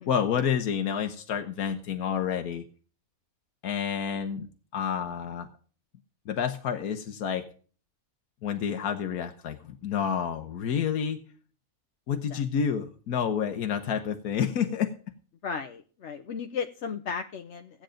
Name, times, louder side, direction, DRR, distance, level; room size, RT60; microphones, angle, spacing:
voice 1, 0.1-2.6 3.6-4.5 4.7-5.5 6.3-7.5 8.4-11.2 12.1-14.9, left 8 dB, 85° left, 6 dB, 1.5 m, -29 dB
voice 2, 12.1-12.4 15.4-17.8, left 6 dB, 55° left, 6 dB, 1.0 m, -35 dB
15.5 x 8.8 x 5.1 m, 0.41 s
omnidirectional pair, 1.5 m